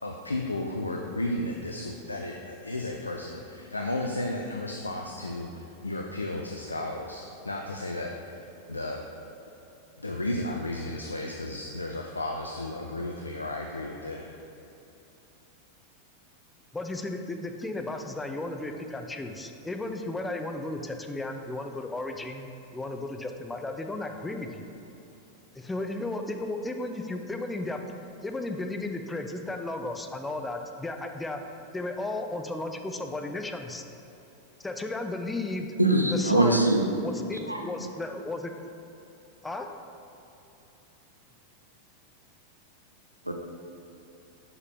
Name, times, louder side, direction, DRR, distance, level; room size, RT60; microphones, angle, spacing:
voice 1, 0.0-8.4 8.7-9.0 10.0-14.3, left 1 dB, 80° left, 2 dB, 0.4 m, -33 dB
voice 2, 16.7-24.7 25.6-31.4 31.7-33.9 34.6-35.7 36.1-36.7 37.0-38.5 39.4-39.7, left 2 dB, 10° left, 5 dB, 0.4 m, -34 dB
voice 3, 35.8-36.8 37.4-37.7 43.2-43.3, right 1 dB, 85° right, 3 dB, 0.5 m, -22 dB
5.7 x 5.6 x 3.6 m, 3.0 s
figure-of-eight pair, 90°, 0 cm